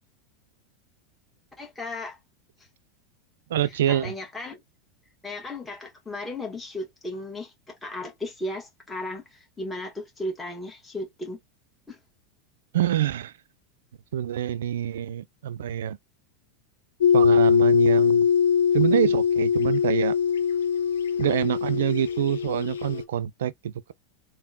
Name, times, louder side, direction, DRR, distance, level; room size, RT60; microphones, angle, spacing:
voice 1, 1.6-2.2 3.6-4.6 5.2-11.4 11.9-12.0, left 1 dB, 15° left, 1.3 m, -35 dB
voice 2, 3.5-4.1 12.7-13.3 14.1-16.0 17.1-18.3 18.7-20.1 21.2-23.9, right 11 dB, 75° right, 0.3 m, -26 dB
sound 1, 17.0-23.0, left 7 dB, 80° left, 0.6 m, -22 dB
3.5 x 2.1 x 2.2 m
hypercardioid pair, 90°, 0 cm